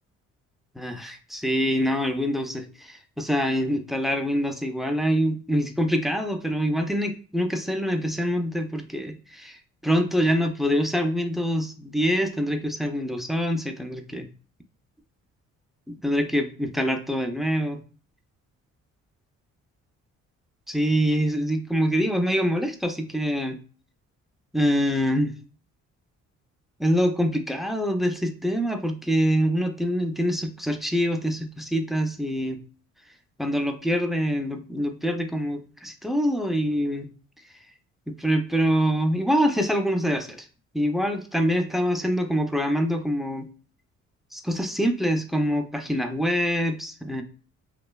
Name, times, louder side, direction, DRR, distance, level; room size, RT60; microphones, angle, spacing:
voice 1, 0.8-9.6 9.8-14.3 15.9-17.8 20.7-23.6 24.5-25.3 26.8-32.6 33.4-37.1 38.1-40.4 40.7-43.5 44.3-47.2, equal, ahead, 6 dB, 0.3 m, -25 dB
3.0 x 2.2 x 2.2 m, 0.38 s
cardioid pair, 90°, 30 cm